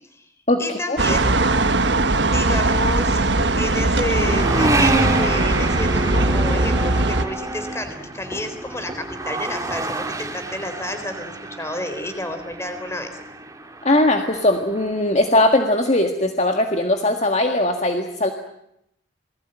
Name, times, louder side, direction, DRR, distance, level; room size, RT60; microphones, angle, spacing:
voice 1, 0.6-1.3 2.2-13.1, left 1 dB, 15° left, 8 dB, 3.8 m, -30 dB
sound 1, 1.0-7.2, right 2 dB, 60° right, 1.4 m, -20 dB
sound 2, 1.1-15.4, right 2 dB, 15° right, 2.1 m, -28 dB
voice 2, 13.8-18.3, left 1 dB, 35° left, 4 dB, 1.8 m, -19 dB
28.0 x 20.5 x 9.0 m, 0.79 s
head